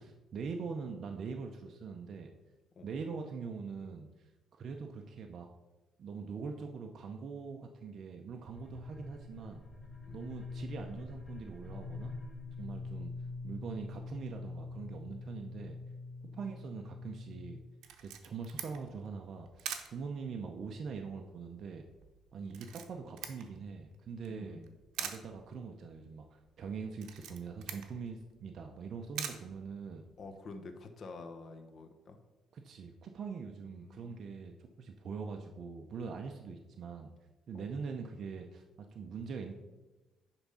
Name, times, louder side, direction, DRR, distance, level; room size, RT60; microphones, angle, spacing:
voice 1, 0.0-2.3 2.8-4.3 4.6-5.5 6.0-9.6 10.1-12.1 12.6-13.1 13.4-15.8 16.4-17.6 18.0-21.8 22.3-24.6 25.0-30.0 32.5-37.1 37.5-38.6 38.9-39.5, right 5 dB, 50° right, 3 dB, 0.6 m, -43 dB
sound 1, 8.4-17.6, left 3 dB, 15° left, 2.2 m, -45 dB
Camera, 17.8-30.3, right 9 dB, 85° right, 0.8 m, -47 dB
voice 2, 24.3-24.7 30.2-32.2 33.6-34.4 37.5-37.7, left 3 dB, 45° left, 6 dB, 1.0 m, -49 dB
9.9 x 3.5 x 5.6 m, 1.2 s
cardioid pair, 125°, 0 cm